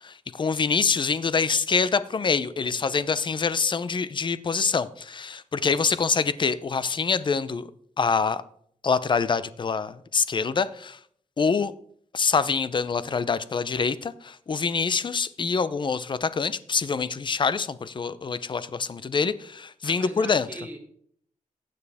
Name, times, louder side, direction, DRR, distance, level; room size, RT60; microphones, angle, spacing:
voice 1, 0.0-7.7 8.0-8.4 8.8-11.0 11.4-11.7 12.1-20.5, left 5 dB, 35° left, 15 dB, 0.6 m, -25 dB
voice 2, 5.6-6.1 19.8-20.8, right 1 dB, 15° right, 0 dB, 3.1 m, -43 dB
15.5 x 9.3 x 3.5 m, 0.64 s
wide cardioid pair, 120°, 13 cm